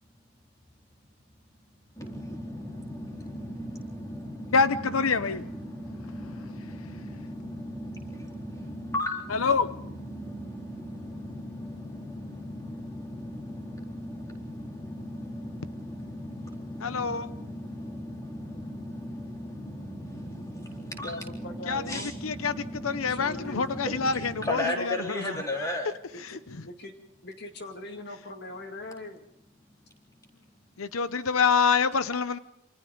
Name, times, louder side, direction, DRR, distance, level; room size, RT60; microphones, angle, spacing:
voice 1, 2.0-25.9 30.2-30.3, left 1 dB, 15° left, 4.1 m, -37 dB
voice 2, 4.5-5.4 9.3-9.7 16.8-17.3 21.7-25.8 30.8-32.4, left 5 dB, 90° left, 0.8 m, -26 dB
voice 3, 21.0-22.1 23.1-23.7 24.7-24.9 25.2-25.4 26.1-26.9 27.2-29.2, left 1 dB, 50° left, 2.2 m, -41 dB
28.0 x 26.0 x 3.9 m
head